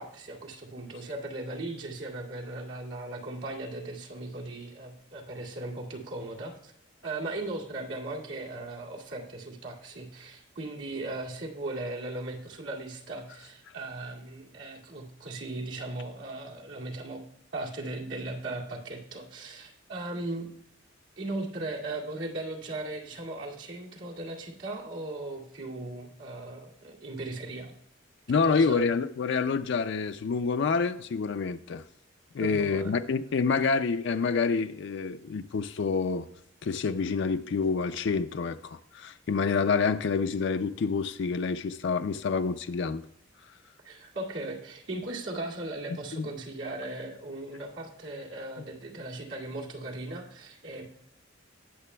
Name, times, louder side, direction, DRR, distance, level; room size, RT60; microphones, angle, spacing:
voice 1, 0.0-6.7 7.0-17.2 17.5-20.5 21.2-27.7 28.4-28.9 32.4-33.0 43.8-50.8, right 2 dB, 85° right, -3 dB, 2.3 m, -38 dB
voice 2, 28.3-31.8 32.3-36.3 36.6-43.0 46.2-46.3, left 5 dB, 65° left, 8 dB, 0.4 m, -27 dB
19.0 x 6.7 x 2.2 m, 0.74 s
head